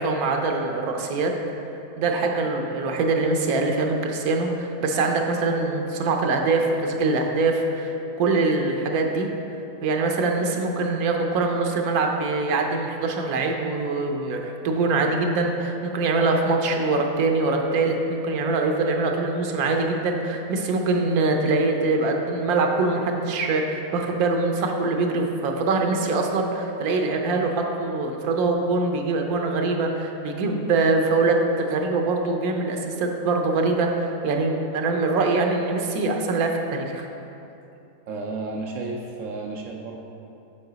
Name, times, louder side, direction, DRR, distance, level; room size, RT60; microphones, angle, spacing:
voice 1, 0.0-1.3 2.0-9.3 9.8-37.1, right 3 dB, 90° right, 3 dB, 1.2 m, -23 dB
voice 2, 38.1-40.0, right 3 dB, 70° right, 1 dB, 0.8 m, -32 dB
7.7 x 4.7 x 3.9 m, 2.8 s
omnidirectional pair, 1.5 m